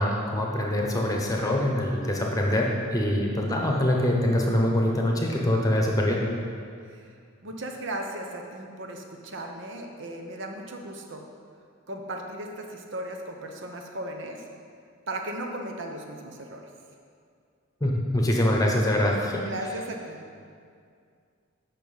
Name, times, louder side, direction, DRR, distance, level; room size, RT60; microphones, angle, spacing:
voice 1, 0.0-6.2 17.8-19.5, left 1 dB, 15° left, 0 dB, 1.0 m, -24 dB
voice 2, 6.9-11.2 11.9-14.5 15.1-16.6 19.4-20.2, right 1 dB, 60° right, 3 dB, 0.9 m, -36 dB
8.4 x 5.8 x 5.5 m, 2.3 s
head